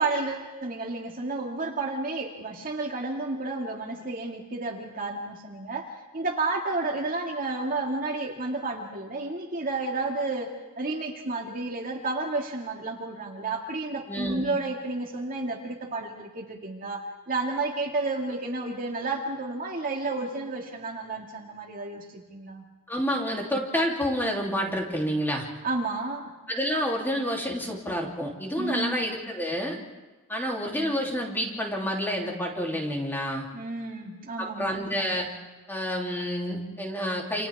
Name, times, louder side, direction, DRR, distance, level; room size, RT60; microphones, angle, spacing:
voice 1, 0.0-22.6 25.6-26.3 28.6-29.0 33.5-34.8, right 3 dB, 40° right, 0 dB, 2.2 m, -31 dB
voice 2, 14.1-14.4 22.9-25.5 26.5-29.8 30.3-33.5 34.4-35.3 35.7-37.5, equal, 10° left, -1 dB, 3.2 m, -29 dB
29.0 x 28.0 x 3.6 m, 1.2 s
head